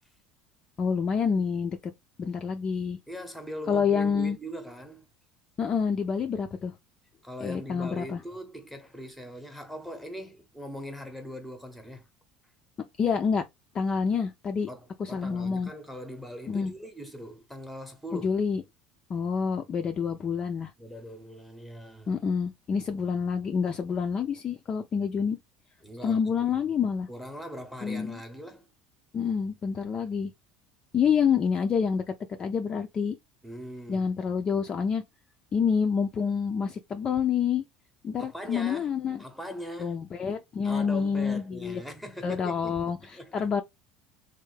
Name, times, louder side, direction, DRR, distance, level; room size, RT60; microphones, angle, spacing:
voice 1, 0.8-1.9 2.2-3.0 3.7-4.4 5.6-6.7 7.4-8.2 13.0-13.4 13.7-14.7 15.0-15.7 16.5-16.7 18.1-18.6 19.1-20.7 22.1-25.4 26.0-27.1 27.8-28.2 29.1-30.3 30.9-33.2 33.9-35.0 35.5-37.6 38.0-39.2 39.8-41.8 42.2-43.6, left 6 dB, 30° left, 0.3 m, -27 dB
voice 2, 3.1-5.1 7.2-12.1 14.7-18.3 20.8-22.1 25.8-26.3 27.1-28.7 33.4-34.1 38.2-38.9 39.2-40.0 40.6-43.5, equal, ahead, 0.7 m, -41 dB
3.3 x 2.1 x 3.1 m
cardioid pair, 150°, 3 cm